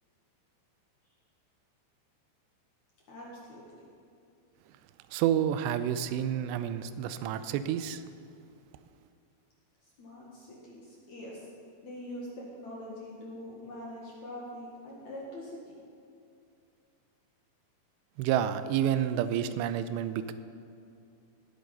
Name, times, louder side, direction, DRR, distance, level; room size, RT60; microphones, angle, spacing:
voice 1, 3.1-3.9 9.8-11.5 11.8-15.7, left 1 dB, 55° left, -4 dB, 2.3 m, -44 dB
voice 2, 5.1-8.0 18.2-20.3, right 10 dB, 85° right, 11 dB, 2.6 m, -29 dB
18.0 x 8.4 x 5.4 m, 2.6 s
omnidirectional pair, 5.3 m